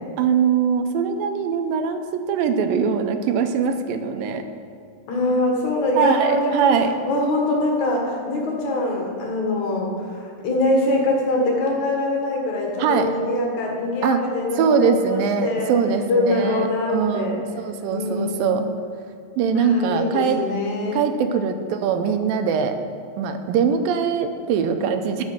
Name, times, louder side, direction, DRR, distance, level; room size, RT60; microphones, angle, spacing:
voice 1, 0.2-4.4 6.0-6.9 12.8-13.1 14.0-14.2 14.6-18.6 19.4-20.4 20.9-22.8 23.2-25.2, right 6 dB, 85° right, 7 dB, 2.5 m, -22 dB
voice 2, 5.1-6.7 7.1-15.7 16.1-17.4 17.8-18.5 19.5-21.0, left 2 dB, 60° left, -1 dB, 2.8 m, -23 dB
11.5 x 6.3 x 7.4 m, 2.3 s
omnidirectional pair, 4.1 m